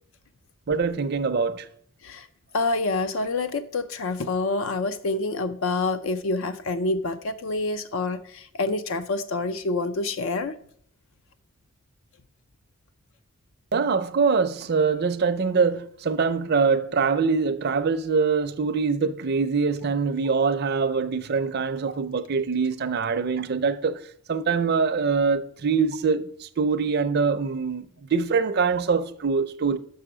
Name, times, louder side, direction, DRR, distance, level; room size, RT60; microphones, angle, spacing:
voice 1, 0.7-1.7 13.7-24.0 24.3-29.8, right 5 dB, 50° right, 0.5 m, -24 dB
voice 2, 2.5-10.6, left 3 dB, 65° left, 0.4 m, -27 dB
6.7 x 5.6 x 4.9 m
head